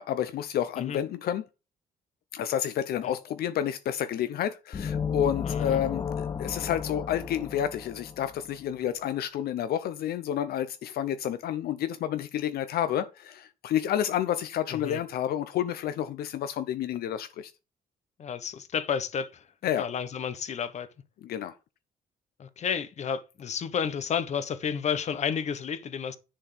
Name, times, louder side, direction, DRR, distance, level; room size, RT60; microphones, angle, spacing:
voice 1, 0.0-1.4 2.3-17.5 19.6-19.9 21.2-21.6, left 10 dB, 75° left, 0.7 m, -30 dB
sound 1, 4.7-8.5, left 7 dB, 25° left, 0.6 m, -33 dB
voice 2, 5.4-5.8 14.7-15.0 18.2-19.4 19.8-20.9 22.4-26.2, left 7 dB, 45° left, 1.1 m, -31 dB
10.5 x 4.5 x 5.9 m
cardioid pair, 150°, 16 cm